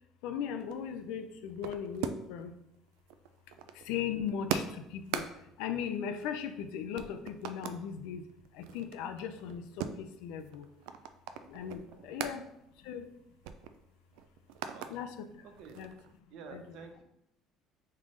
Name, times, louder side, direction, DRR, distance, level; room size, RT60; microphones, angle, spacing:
voice 1, 0.2-2.6 3.7-10.7 11.5-12.5 12.8-13.1 14.9-15.5 15.8-15.9 16.5-16.8, left 8 dB, 85° left, 8 dB, 0.4 m, -38 dB
sound 1, 0.6-2.5 2.7-6.6 6.9-7.8 8.3-12.4 12.8-12.9 13.2-14.9 15.3-16.2, right 8 dB, 85° right, 0.3 m, -41 dB
voice 2, 14.6-14.9 15.6-15.8 16.3-17.0, right 4 dB, 60° right, 4 dB, 0.7 m, -50 dB
3.6 x 3.2 x 3.8 m, 0.81 s
cardioid pair, 160°, 0 cm